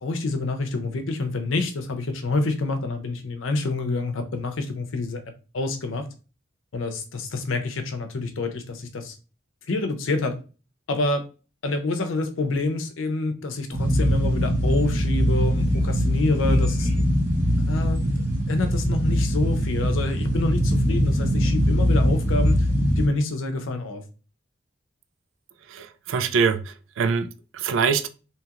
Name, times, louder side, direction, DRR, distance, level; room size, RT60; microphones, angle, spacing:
voice 1, 0.0-5.2 5.5-6.1 6.7-9.1 9.7-10.4 10.9-11.3 11.6-16.9 17.7-18.0 18.5-22.7 23.0-24.0, left 2 dB, 85° left, 0.6 m, -27 dB
sound 1, 13.7-23.1, equal, 10° right, 0.6 m, -22 dB
voice 2, 25.7-28.1, right 5 dB, 80° right, 0.3 m, -24 dB
2.9 x 2.8 x 2.4 m
head